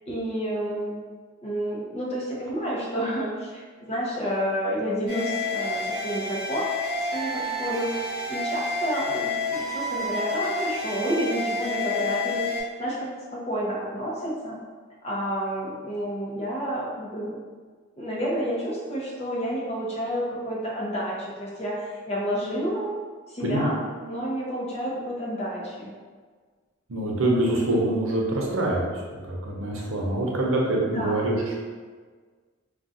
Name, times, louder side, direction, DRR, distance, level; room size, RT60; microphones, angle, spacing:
voice 1, 0.1-1.0 1.4-6.7 7.0-14.6 15.0-17.4 18.0-23.0 23.3-25.9 30.9-31.3, equal, 30° left, -5 dB, 0.6 m, -30 dB
sound 1, 5.1-12.6, left 2 dB, 25° right, 0.8 m, -29 dB
voice 2, 26.9-31.6, right 1 dB, 85° right, -2 dB, 0.7 m, -25 dB
2.4 x 2.3 x 3.9 m, 1.5 s
head